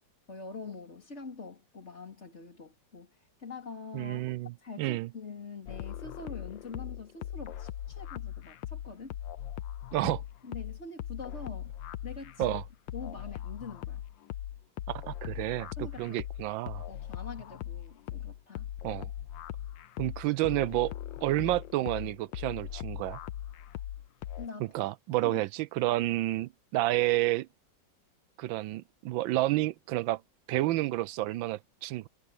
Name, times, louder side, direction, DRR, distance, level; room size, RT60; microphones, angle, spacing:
voice 1, 0.3-3.1 3.4-4.3 4.6-9.1 10.4-11.7 12.0-12.6 12.9-14.0 15.8-16.2 16.9-18.7 23.7-23.8 24.4-24.8 25.2-25.4, left 4 dB, 35° left, 3.4 m, -44 dB
voice 2, 3.9-5.1 9.9-10.2 12.4-12.6 14.9-15.7 16.0-16.8 18.8-19.1 20.0-20.9 21.2-23.2 24.6-27.5 28.4-30.2 30.5-32.1, right 17 dB, 85° right, 1.3 m, -30 dB
sound 1, 5.7-24.5, left 11 dB, 80° left, 1.5 m, -40 dB
omnidirectional pair, 2.0 m